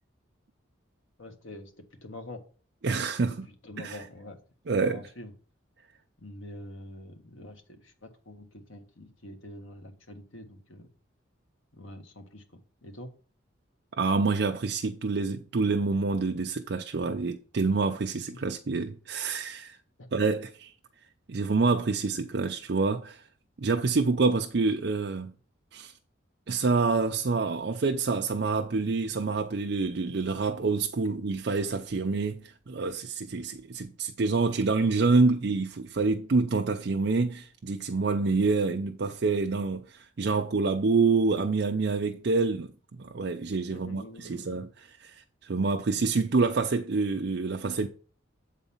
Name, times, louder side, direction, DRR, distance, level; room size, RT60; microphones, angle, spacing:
voice 1, 1.2-2.4 3.6-4.4 4.7-5.3 6.2-10.9 11.7-13.1 18.3-18.4 20.0-20.1 43.7-44.6, left 1 dB, 85° left, 1.5 m, -45 dB
voice 2, 2.8-3.5 3.8-4.0 4.7-5.0 14.0-19.8 20.1-20.7 21.3-23.3 23.6-25.3 25.7-25.9 26.5-44.7 45.0-47.9, right 4 dB, 55° right, 0.5 m, -27 dB
8.1 x 4.1 x 5.5 m
head